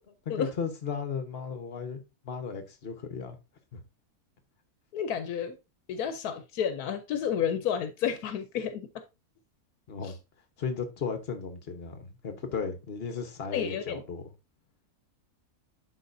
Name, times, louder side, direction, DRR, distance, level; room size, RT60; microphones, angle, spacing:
voice 1, 0.3-2.0 2.2-3.3 3.7-3.8 9.9-10.2 10.6-14.2, left 5 dB, 45° left, 1.2 m, -35 dB
voice 2, 4.9-5.6 5.9-8.9 10.0-10.1 13.5-14.0, left 8 dB, 80° left, 1.2 m, -31 dB
11.0 x 4.0 x 2.6 m
omnidirectional pair, 1.6 m